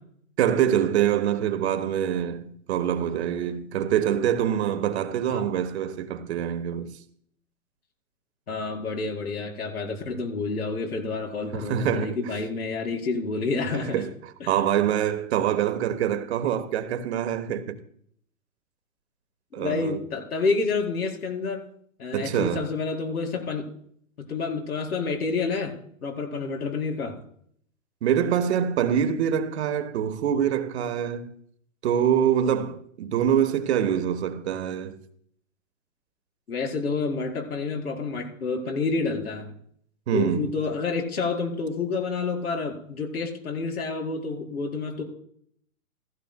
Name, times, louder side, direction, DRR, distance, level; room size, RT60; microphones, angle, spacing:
voice 1, 0.4-6.9 11.5-12.2 13.7-17.8 19.5-20.0 22.1-22.7 28.0-31.4 31.8-35.0 40.1-40.5, right 9 dB, 45° right, 1.2 m, -25 dB
voice 2, 8.5-14.0 14.4-14.5 19.5-21.6 22.0-23.7 24.2-25.7 26.0-27.2 36.5-39.5 40.1-45.0, left 4 dB, 80° left, 4.5 m, -29 dB
16.0 x 15.5 x 2.2 m
hypercardioid pair, 140°, 44 cm